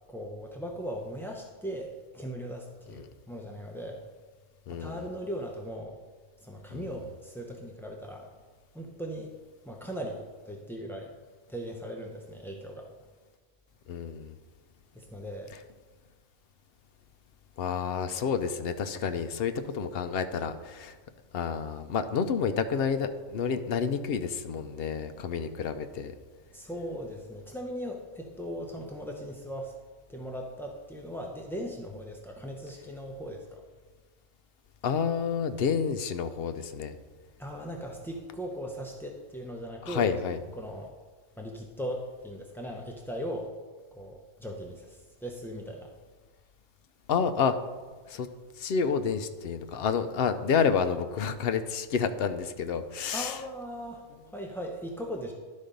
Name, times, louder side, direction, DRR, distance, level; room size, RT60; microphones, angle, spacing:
voice 1, 0.1-4.0 4.7-6.0 6.4-8.3 8.7-9.3 9.6-11.2 11.5-12.9 14.9-15.6 26.5-29.8 30.1-33.6 37.4-40.1 40.6-40.9 41.4-43.5 43.9-45.9 53.1-55.3, equal, 5° left, 0 dB, 0.3 m, -38 dB
voice 2, 4.7-5.0 6.7-6.9 13.9-14.3 17.6-21.0 21.3-26.1 34.8-37.0 39.9-40.4 47.1-47.6 48.1-48.3 48.6-53.4, left 6 dB, 60° left, 9 dB, 0.7 m, -29 dB
11.5 x 4.2 x 5.2 m, 1.4 s
omnidirectional pair, 1.3 m